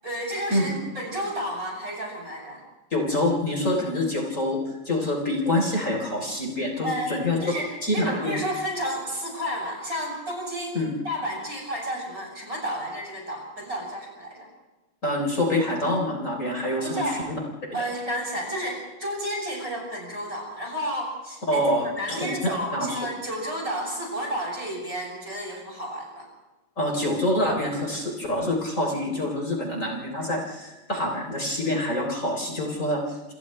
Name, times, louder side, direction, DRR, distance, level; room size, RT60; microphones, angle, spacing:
voice 1, 0.0-2.6 6.8-7.1 7.4-14.5 16.8-17.2 17.7-26.3, equal, 40° right, -2 dB, 8.3 m, -31 dB
voice 2, 2.9-4.6 4.9-7.4 7.8-8.4 10.7-10.9 15.0-17.4 21.5-22.3 22.7-22.9 26.8-33.3, left 1 dB, 35° left, 0 dB, 4.0 m, -26 dB
28.5 x 28.0 x 3.3 m, 1.1 s
omnidirectional pair, 2.3 m